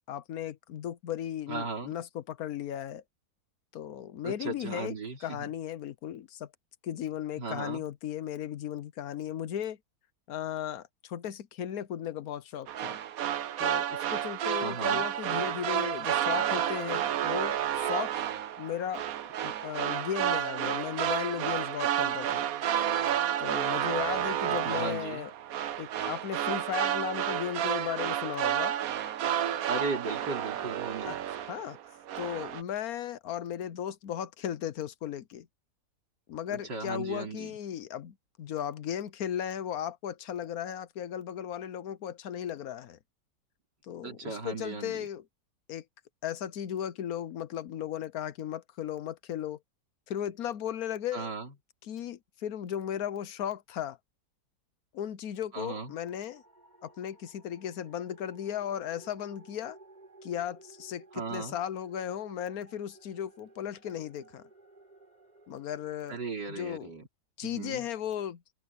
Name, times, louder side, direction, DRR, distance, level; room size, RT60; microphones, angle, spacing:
voice 1, 0.1-3.0 3.7-5.0 5.2-6.5 6.8-9.8 10.3-13.0 13.6-18.2 18.6-19.0 19.4-22.5 23.4-25.3 25.8-28.7 31.0-31.8 32.2-35.5 36.3-43.0 43.8-45.2 45.7-45.8 46.2-49.6 50.1-51.3 51.8-54.0 54.9-56.4 56.8-59.8 60.2-64.4 65.5-66.2 66.5-66.9 67.4-68.4, left 10 dB, 60° left, 1.2 m, -36 dB
voice 2, 1.5-1.9 4.2-5.5 7.4-7.9 14.6-15.1 24.5-25.3 29.7-31.2 36.5-37.5 44.0-45.0 51.1-51.5 55.5-55.9 61.1-61.6 66.1-67.1 67.4-67.9, right 4 dB, 80° right, 4.3 m, -37 dB
sound 1, 12.7-31.8 32.1-32.6, right 10 dB, 60° right, 1.1 m, -31 dB
sound 2, 55.6-66.3, right 2 dB, 25° right, 5.3 m, -56 dB
open air
omnidirectional pair, 1.8 m